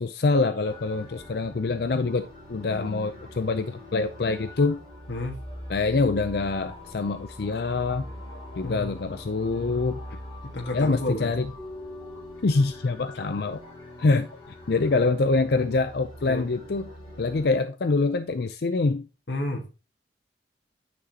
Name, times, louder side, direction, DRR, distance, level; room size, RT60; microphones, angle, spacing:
voice 1, 0.0-4.8 5.7-8.0 8.6-10.0 10.7-11.5 12.4-13.6 14.0-16.9 17.2-19.1, left 3 dB, 60° left, 0.5 m, -25 dB
sound 1, 0.6-17.5, left 1 dB, 30° left, 4.6 m, -43 dB
voice 2, 5.1-5.4 8.6-8.9 10.4-11.3 16.3-16.5 19.3-19.7, left 2 dB, 75° left, 1.5 m, -31 dB
9.5 x 6.1 x 2.9 m
head